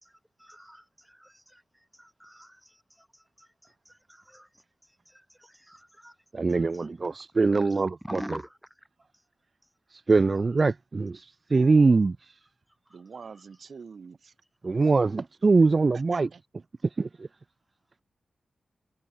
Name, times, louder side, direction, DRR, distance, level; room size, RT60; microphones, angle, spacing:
voice 1, 0.0-6.2 6.7-6.9 7.5-8.6 12.9-13.0, equal, 5° right, 2.0 m, -45 dB
voice 2, 6.3-8.2 9.9-12.2 14.6-16.3 17.0-17.3, right 3 dB, 40° right, 0.3 m, -23 dB
voice 3, 12.9-14.3 16.1-16.6, right 5 dB, 65° right, 3.2 m, -45 dB
wide cardioid pair, 115°, 0 cm